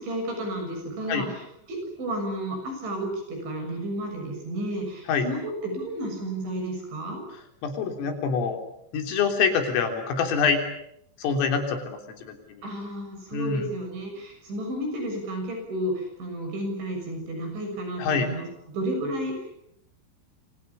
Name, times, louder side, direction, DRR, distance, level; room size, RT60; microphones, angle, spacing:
voice 1, 0.0-1.4 1.7-7.2 12.6-19.5, right 1 dB, 65° right, 4 dB, 9.0 m, -32 dB
voice 2, 7.6-8.6 8.9-10.6 11.2-12.7 13.3-13.7 18.0-18.3, left 6 dB, 80° left, 5 dB, 6.1 m, -25 dB
28.5 x 26.0 x 7.2 m, 0.75 s
omnidirectional pair, 5.8 m